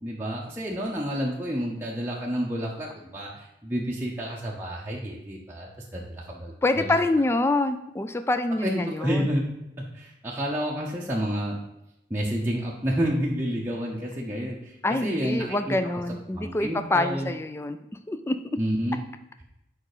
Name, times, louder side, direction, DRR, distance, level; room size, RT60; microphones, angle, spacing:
voice 1, 0.0-6.9 8.6-9.5 9.9-11.6 12.1-14.8 15.0-15.8 16.3-17.3 18.6-19.0, equal, 15° right, -4 dB, 0.7 m, -29 dB
voice 2, 6.6-9.3 14.8-17.8 18.1-18.4, left 2 dB, 15° left, 9 dB, 0.3 m, -26 dB
6.7 x 4.9 x 4.9 m, 0.87 s
head